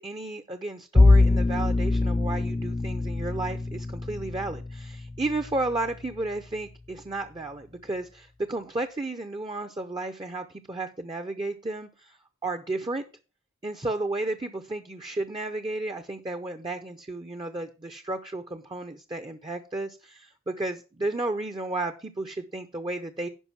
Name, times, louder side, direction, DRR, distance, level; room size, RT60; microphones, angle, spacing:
voice 1, 0.0-13.0 13.6-23.3, right 2 dB, 20° right, 7 dB, 0.7 m, -33 dB
Bowed string instrument, 0.9-6.0, left 2 dB, 20° left, 0.4 m, -23 dB
11.0 x 5.0 x 6.0 m, 0.33 s
head